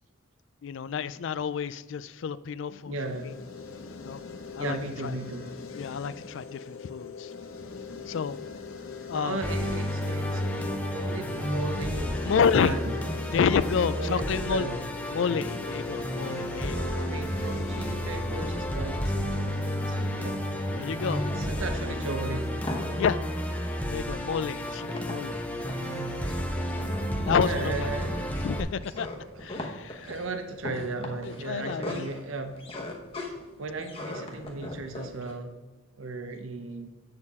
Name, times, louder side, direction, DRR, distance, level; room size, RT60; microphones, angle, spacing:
voice 1, 0.6-2.9 3.2-3.3 3.9-4.2 4.6-4.8 5.0-5.1 5.7-7.3 8.1-8.4 9.1-9.4 12.2-12.7 13.3-14.7 15.1-17.0 20.7-21.2 21.8-22.0 23.0-23.2 23.9-25.4 27.2-27.9 28.4-29.1 29.4-30.1 31.2-32.1, left 6 dB, 65° left, 16 dB, 0.3 m, -29 dB
voice 2, 2.9-3.3 4.6-5.6 9.1-12.1 12.4-12.9 13.9-14.8 16.7-20.4 21.2-22.5 25.6-26.2 27.4-28.4 29.3-32.6 33.6-35.6 36.0-36.9, right 3 dB, 75° right, 6 dB, 0.7 m, -36 dB
sound 1, 3.0-22.0, left 5 dB, 80° left, 0.8 m, -42 dB
Musical instrument, 9.4-28.6, equal, 5° left, 0.6 m, -31 dB
sound 2, 20.8-35.3, left 1 dB, 25° left, 1.0 m, -39 dB
8.5 x 6.5 x 3.6 m, 1.3 s
head